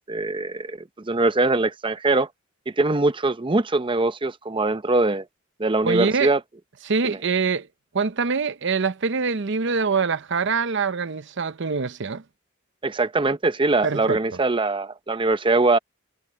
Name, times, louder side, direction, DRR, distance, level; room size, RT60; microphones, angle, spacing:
voice 1, 0.1-2.3 2.8-5.2 5.6-6.4 7.0-7.2 12.8-15.8, right 2 dB, 25° right, 0.7 m, -22 dB
voice 2, 5.8-6.3 6.8-7.7 7.9-12.2 13.8-14.2, right 5 dB, 60° right, 0.7 m, -24 dB
head